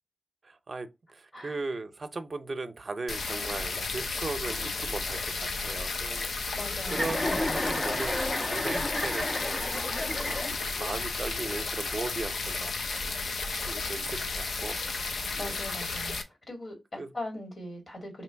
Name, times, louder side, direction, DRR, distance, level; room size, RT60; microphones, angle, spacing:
voice 1, 0.4-6.6 6.9-9.9 10.2-13.2 13.5-15.6 17.0-17.1, right 3 dB, 50° right, 0.6 m, -38 dB
sound 1, 3.1-16.2, left 3 dB, 90° left, 0.6 m, -33 dB
voice 2, 6.5-7.1 15.4-18.2, left 1 dB, 55° left, 1.9 m, -40 dB
Chuckle chortle, 6.9-10.9, left 1 dB, 30° left, 0.5 m, -32 dB
3.0 x 2.9 x 4.5 m
cardioid pair, 70°, 0 cm